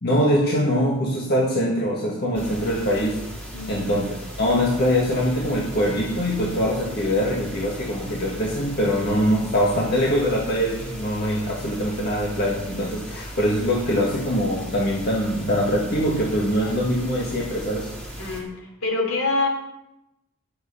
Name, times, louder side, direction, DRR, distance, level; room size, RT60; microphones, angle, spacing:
voice 1, 0.0-3.2 3.7-4.0 4.4-17.9, equal, 50° left, -3 dB, 1.8 m, -23 dB
sound 1, 2.3-18.4, equal, 5° left, 1.9 m, -37 dB
voice 2, 3.5-3.9 16.5-16.9 18.2-19.5, left 3 dB, 75° left, 0 dB, 3.3 m, -27 dB
11.0 x 7.7 x 5.6 m, 0.89 s
head